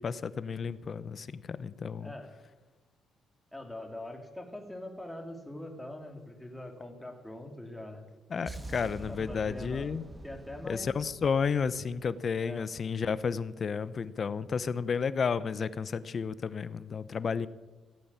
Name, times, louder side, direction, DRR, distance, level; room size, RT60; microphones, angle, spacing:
voice 1, 0.0-2.1 8.3-10.0 10.7-17.5, left 6 dB, 45° left, 16 dB, 0.8 m, -32 dB
voice 2, 3.5-8.0 9.1-9.9 10.2-10.9 12.4-12.7, left 1 dB, 5° left, 3 dB, 2.9 m, -43 dB
sound 1, 8.5-12.5, right 1 dB, 15° right, 1.3 m, -45 dB
16.0 x 8.6 x 8.7 m, 1.2 s
cardioid pair, 90°, 0 cm